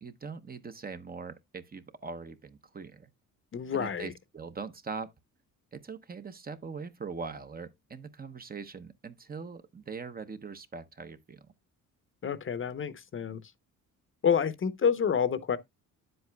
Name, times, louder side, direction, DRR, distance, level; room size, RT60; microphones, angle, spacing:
voice 1, 0.0-3.1 3.7-5.1 5.7-11.4, right 5 dB, 25° right, 0.8 m, -41 dB
voice 2, 3.5-4.1 12.2-13.4 14.2-15.6, left 7 dB, 35° left, 0.8 m, -28 dB
9.4 x 7.8 x 2.2 m
cardioid pair, 105°, 34 cm